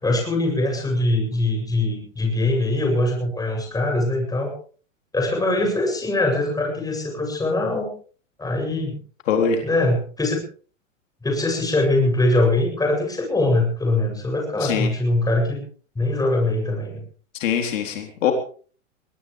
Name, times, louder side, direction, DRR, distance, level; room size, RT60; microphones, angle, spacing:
voice 1, 0.0-4.5 5.1-7.9 8.4-9.0 9.6-10.4 11.2-15.7 15.9-17.0, left 2 dB, 10° left, 2 dB, 7.9 m, -22 dB
voice 2, 9.3-9.6 14.6-14.9 17.3-18.3, left 7 dB, 70° left, 4 dB, 4.0 m, -22 dB
22.5 x 19.0 x 3.4 m, 0.41 s
hypercardioid pair, 120°, 39 cm